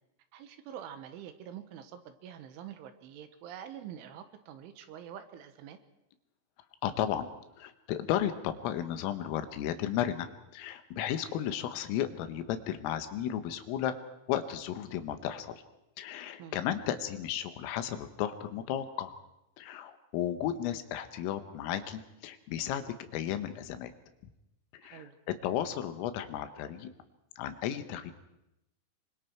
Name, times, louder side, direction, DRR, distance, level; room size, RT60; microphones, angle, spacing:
voice 1, 0.3-5.8 16.4-16.6 24.8-25.2, right 9 dB, 75° right, 9 dB, 3.5 m, -46 dB
voice 2, 6.8-7.3 7.6-13.9 14.3-15.6 16.0-19.2 19.6-23.9 24.7-26.9 27.4-28.1, left 10 dB, 80° left, 9 dB, 3.8 m, -34 dB
26.0 x 24.5 x 4.6 m, 0.88 s
omnidirectional pair, 5.9 m